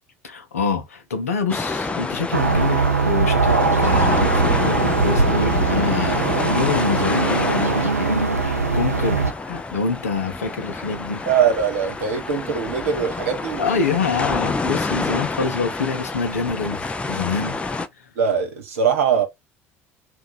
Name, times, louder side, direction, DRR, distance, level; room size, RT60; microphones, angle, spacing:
voice 1, 0.2-11.2 13.6-17.6 18.0-18.1, left 4 dB, 75° left, 0.6 m, -26 dB
sound 1, 1.5-17.9, left 3 dB, 15° left, 0.4 m, -28 dB
sound 2, 2.3-9.3, right 4 dB, 85° right, 0.4 m, -20 dB
voice 2, 11.3-13.6 18.2-19.3, right 7 dB, 70° right, 0.9 m, -21 dB
2.7 x 2.3 x 3.9 m
figure-of-eight pair, 65°, 8 cm